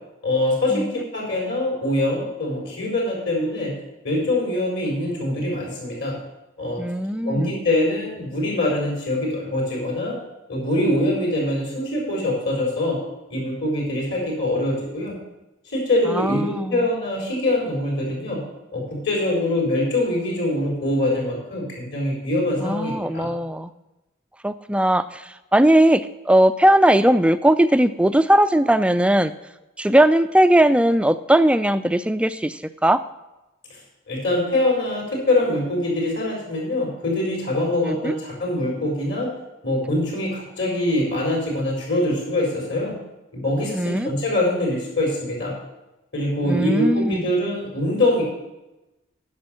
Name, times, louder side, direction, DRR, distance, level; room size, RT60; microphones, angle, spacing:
voice 1, 0.2-3.7 4.0-6.2 6.6-6.8 7.2-10.2 10.5-13.0 13.3-15.2 15.7-18.4 18.7-23.3 33.7-33.8 34.1-39.3 39.6-43.0 43.3-45.5 46.1-48.2, left 1 dB, 60° left, -2 dB, 4.2 m, -23 dB
voice 2, 6.8-7.6 16.1-16.9 22.6-23.7 24.4-29.3 29.8-33.0 37.8-38.1 43.7-44.1 46.5-47.2, right 1 dB, 5° right, 13 dB, 0.3 m, -19 dB
9.5 x 6.3 x 7.4 m, 1.0 s
head